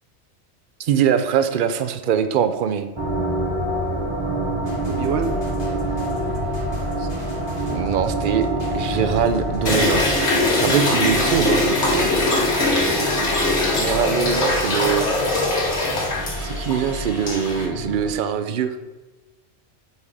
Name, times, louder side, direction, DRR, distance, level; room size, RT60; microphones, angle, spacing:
voice 1, 0.8-2.9 7.0-7.1 7.7-8.5 8.7-10.1 10.5-11.6 13.8-15.1 16.4-18.8, right 8 dB, 55° right, 10 dB, 0.6 m, -22 dB
sound 1, 3.0-18.1, right 1 dB, 25° right, 0.9 m, -27 dB
sound 2, 4.6-10.2, equal, 35° left, 1.7 m, -36 dB
voice 2, 4.9-5.4 10.7-12.1, right 6 dB, 75° right, 6 dB, 1.0 m, -28 dB
sound 3, 9.7-17.7, left 2 dB, 70° left, 1.7 m, -22 dB
8.1 x 3.6 x 4.8 m, 1.2 s
omnidirectional pair, 1.2 m